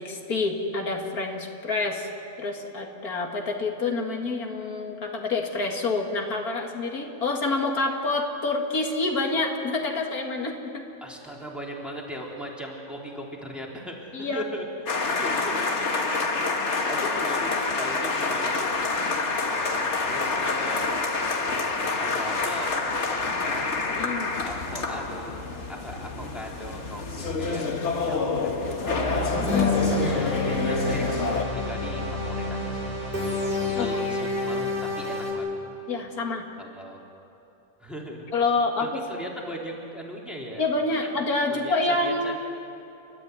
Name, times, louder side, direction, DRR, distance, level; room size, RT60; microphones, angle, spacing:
voice 1, 0.0-2.1 2.4-10.8 14.1-14.5 23.9-24.3 29.4-29.8 33.7-33.9 35.9-36.5 38.3-38.9 40.6-42.4, left 3 dB, 80° left, 2 dB, 2.4 m, -27 dB
voice 2, 11.0-16.6 16.9-19.0 19.6-20.9 21.4-23.7 24.4-25.4 25.7-28.2 28.9-29.3 30.0-31.1 31.5-32.9 33.8-35.6 36.6-37.0 37.8-38.3 38.8-40.6 40.9-41.2 41.5-42.4, equal, ahead, -3 dB, 3.6 m, -38 dB
sound 1, 14.9-31.4, left 3 dB, 50° left, 1.8 m, -27 dB
sound 2, 28.9-35.3, left 2 dB, 25° right, 6.0 m, -28 dB
30.0 x 13.5 x 9.7 m, 2.9 s
omnidirectional pair, 1.6 m